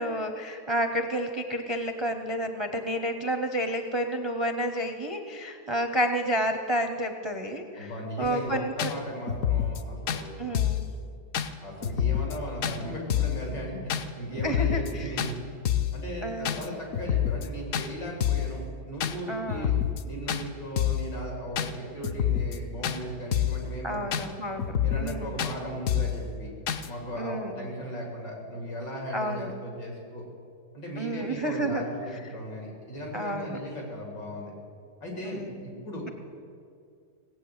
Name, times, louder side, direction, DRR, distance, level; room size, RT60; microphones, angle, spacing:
voice 1, 0.0-7.9 8.2-8.9 10.4-10.9 14.4-15.2 16.2-16.7 19.3-19.7 23.8-25.4 27.2-27.6 29.1-29.5 31.0-31.8 33.1-33.6 35.2-35.6, equal, 45° right, 6 dB, 0.3 m, -30 dB
voice 2, 7.8-10.5 11.6-19.8 20.0-24.2 24.8-26.5 26.8-30.2 30.7-34.5 35.0-36.0, equal, 85° left, -1 dB, 4.2 m, -37 dB
sound 1, 8.2-8.3 8.8-8.9 9.3-9.8 10.1-10.2 10.5-10.9 11.3-11.5 11.8-12.4 12.6-12.8 13.1-13.4 13.9-14.0 14.4-14.9 15.2-15.3 15.7-16.0 16.4-16.7 16.9-17.5 17.7-17.9 18.2-18.5 19.0-19.2 19.5-20.0 20.3-20.4 20.8-21.1 21.6-21.7 22.0-22.6 22.8-23.0 23.3-23.6 24.1-24.3 24.6-25.1 25.4-25.5 25.9-26.2 26.7-26.9, left 10 dB, 65° left, 1.0 m, -27 dB
18.5 x 8.6 x 8.0 m, 2.3 s
omnidirectional pair, 1.9 m